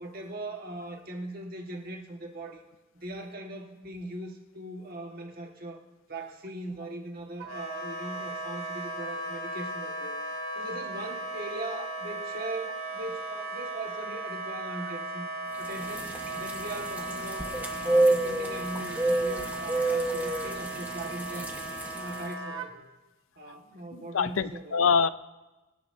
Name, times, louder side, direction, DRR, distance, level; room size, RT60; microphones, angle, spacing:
voice 1, 0.0-2.6 2.9-5.8 6.1-10.1 10.5-15.3 15.6-17.5 17.8-21.5 21.9-22.9 23.4-24.7, right 2 dB, 45° right, 2 dB, 1.5 m, -40 dB
Wind instrument woodwind instrument, 7.4-22.7, right 1 dB, 85° right, 1.4 m, -37 dB
sound 1, 15.6-22.2, right 2 dB, 10° right, 1.1 m, -29 dB
voice 2, 23.9-25.1, left 6 dB, 80° left, 13 dB, 0.5 m, -25 dB
25.0 x 10.5 x 2.7 m, 1.1 s
head